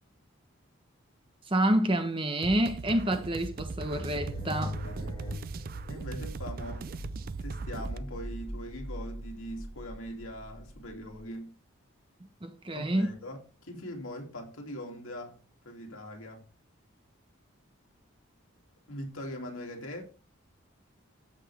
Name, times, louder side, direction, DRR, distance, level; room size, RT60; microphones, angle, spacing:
voice 1, 1.5-4.8 12.4-13.1, right 1 dB, 25° right, 0.9 m, -28 dB
sound 1, 2.4-8.0, right 4 dB, 45° right, 0.3 m, -40 dB
sound 2, 3.4-11.2, equal, 20° left, 4.2 m, -41 dB
voice 2, 4.8-5.2 5.9-6.9 7.4-11.5 12.7-15.4 15.6-16.4 18.9-20.0, equal, 85° left, 2.4 m, -41 dB
14.0 x 5.8 x 3.3 m
head